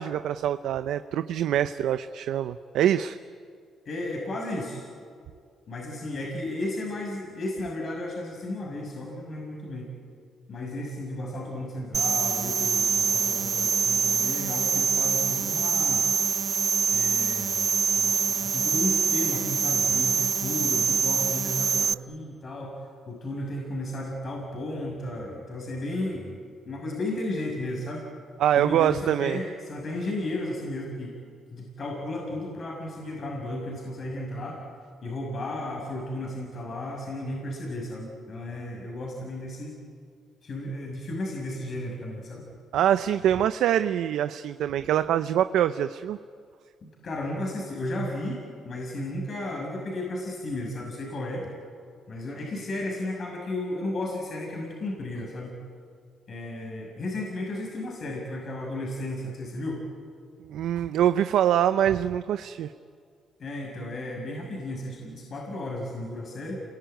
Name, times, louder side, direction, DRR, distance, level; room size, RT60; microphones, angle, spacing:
voice 1, 0.0-3.2 28.4-29.4 42.7-46.2 60.5-62.7, right 10 dB, 80° right, 11 dB, 0.7 m, -24 dB
voice 2, 3.8-4.8 5.7-9.9 10.5-16.1 16.9-17.7 18.0-22.8 23.1-26.4 26.7-28.0 28.5-31.2 31.5-34.6 35.0-39.8 40.4-42.5 46.8-51.5 52.1-55.6 56.3-59.8 63.4-66.6, left 1 dB, 50° left, -1 dB, 6.2 m, -34 dB
sound 1, 11.9-21.9, right 6 dB, 45° right, 0.7 m, -25 dB
29.0 x 22.0 x 9.2 m, 2.1 s
cardioid pair, 90°, 0 cm